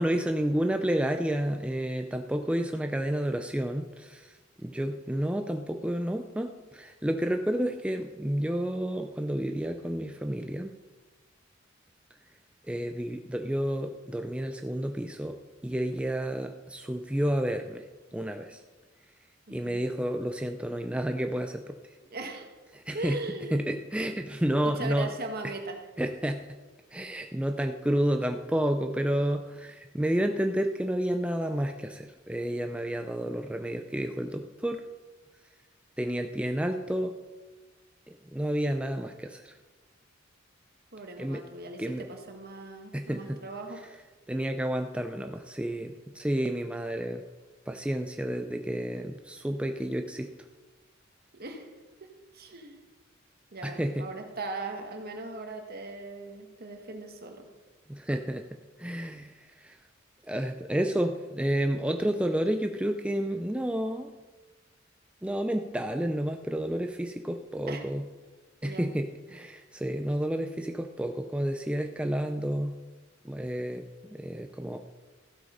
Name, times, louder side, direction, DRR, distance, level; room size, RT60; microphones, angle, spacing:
voice 1, 0.0-10.7 12.7-15.4 15.6-17.8 18.1-18.6 19.5-21.8 22.7-23.2 23.5-25.1 26.0-26.6 26.9-34.8 36.0-37.1 38.1-39.6 41.2-41.4 41.8-42.1 42.9-43.4 44.3-47.2 47.7-50.3 53.6-54.1 57.9-58.4 58.8-59.8 60.3-64.1 65.2-68.0 68.6-72.8 73.2-74.8, right 1 dB, 5° right, 5 dB, 0.4 m, -30 dB
voice 2, 19.5-19.8 22.1-22.5 22.9-23.7 24.6-25.8 40.9-43.8 51.4-51.7 52.0-52.8 53.5-57.5 67.7-67.8 68.6-68.9, right 2 dB, 50° right, 4 dB, 1.7 m, -39 dB
14.5 x 8.2 x 5.1 m, 1.3 s
head